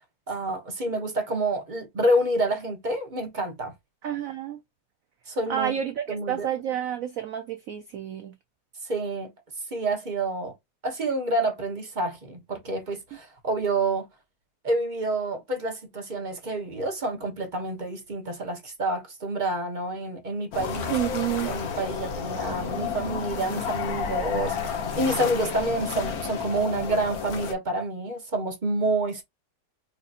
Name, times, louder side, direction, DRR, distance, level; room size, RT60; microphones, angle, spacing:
voice 1, 0.3-3.7 5.3-5.7 6.1-6.5 8.8-9.3 9.7-10.5 10.8-14.1 14.6-20.9 21.5-29.2, right 2 dB, 40° right, 0.7 m, -28 dB
voice 2, 4.0-4.6 5.5-8.3 20.9-21.5, right 10 dB, 85° right, 0.7 m, -29 dB
sound 1, 20.5-27.5, left 6 dB, 55° left, 1.3 m, -31 dB
4.8 x 2.7 x 2.4 m
omnidirectional pair, 2.1 m